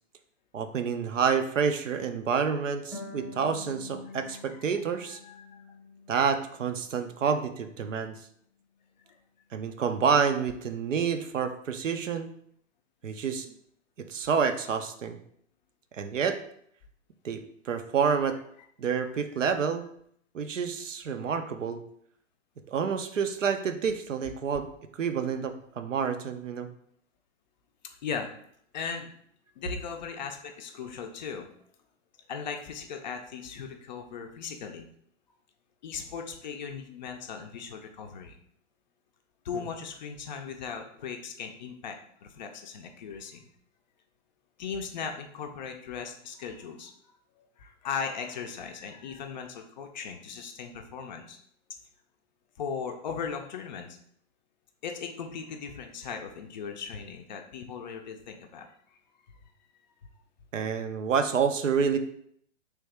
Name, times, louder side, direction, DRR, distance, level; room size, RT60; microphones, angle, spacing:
voice 1, 0.5-5.2 6.1-8.2 9.5-12.3 13.0-13.5 14.0-15.2 15.9-16.4 17.2-18.4 18.8-19.9 20.3-21.8 22.7-24.7 25.0-26.7 39.5-39.6 60.5-62.0, right 6 dB, 75° right, 8 dB, 0.5 m, -28 dB
Harp, 2.9-6.3 6.6-7.7, left 3 dB, ahead, 0.7 m, -47 dB
voice 2, 4.3-4.7 5.0-5.6 9.1-9.2 18.6-18.7 19.0-19.1 28.0-28.3 28.7-29.1 29.6-31.5 32.3-34.9 35.8-38.4 39.4-43.5 44.6-51.4 52.6-54.0 54.8-59.0 59.3-59.4, left 6 dB, 40° left, 4 dB, 0.4 m, -38 dB
3.3 x 2.7 x 3.3 m, 0.66 s
figure-of-eight pair, 110°, 38 cm